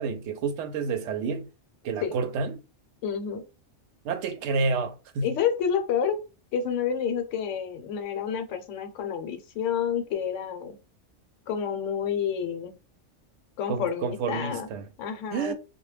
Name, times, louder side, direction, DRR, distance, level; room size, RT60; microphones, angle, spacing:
voice 1, 0.0-1.5 1.8-2.6 4.0-5.3 13.7-14.8 15.3-15.5, right 4 dB, 70° right, 0.8 m, -29 dB
voice 2, 3.0-3.4 5.2-6.2 6.5-10.8 11.5-12.8 13.6-14.7 15.0-15.5, left 7 dB, 80° left, 0.9 m, -29 dB
2.2 x 2.1 x 3.2 m
omnidirectional pair, 1.2 m